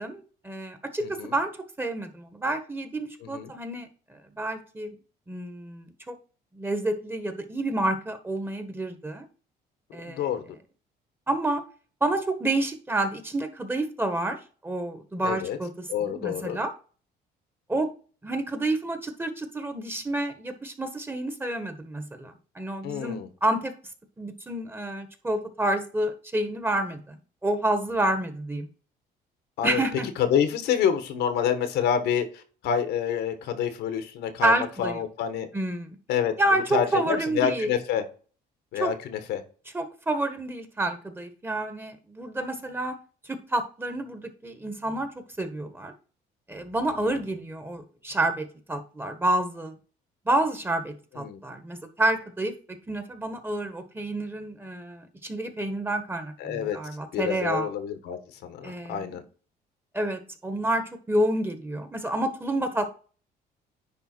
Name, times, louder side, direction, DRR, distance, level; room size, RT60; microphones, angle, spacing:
voice 1, 0.0-1.5 1.8-3.9 4.4-4.9 5.3-6.2 6.5-9.3 9.9-10.2 11.3-11.6 12.0-16.7 17.7-17.9 18.2-23.7 24.2-27.2 27.4-28.7 29.6-30.1 34.4-35.0 35.5-36.0 36.4-37.7 38.8-38.9 39.7-43.0 43.2-45.1 45.4-45.9 46.5-49.7 50.2-57.7 58.6-59.2 59.9-62.9, right 1 dB, 10° right, 8 dB, 1.4 m, -29 dB
voice 2, 1.0-1.3 3.2-3.5 10.0-10.4 15.2-15.6 15.9-16.6 22.8-23.3 29.6-29.8 30.2-35.5 36.1-36.3 36.7-38.0 38.7-39.4 47.0-47.2 51.2-51.4 56.4-56.8 57.1-59.2, left 8 dB, 80° left, 10 dB, 1.4 m, -28 dB
10.0 x 3.4 x 4.5 m, 0.38 s
cardioid pair, 110°, 17 cm